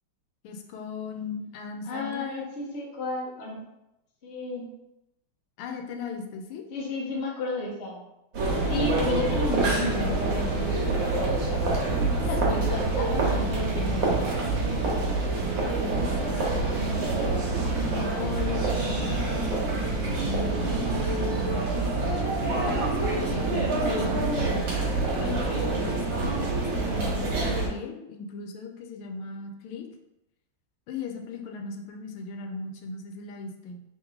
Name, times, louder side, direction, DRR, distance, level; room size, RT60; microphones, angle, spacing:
voice 1, 0.4-2.5 5.6-6.6 12.4-12.6 15.5-17.5 17.8-21.9 22.4-24.8 25.2-29.9 30.9-33.8, left 4 dB, 90° left, 2 dB, 1.5 m, -37 dB
voice 2, 1.9-3.6 4.2-4.7 6.7-8.0 8.7-11.8 12.2-15.1, left 2 dB, 60° left, -2 dB, 0.7 m, -33 dB
sound 1, 8.3-27.7, right 3 dB, 65° right, 1.7 m, -26 dB
sound 2, 12.6-20.7, right 5 dB, 80° right, 1.7 m, -44 dB
3.8 x 3.1 x 3.5 m, 0.90 s
omnidirectional pair, 2.3 m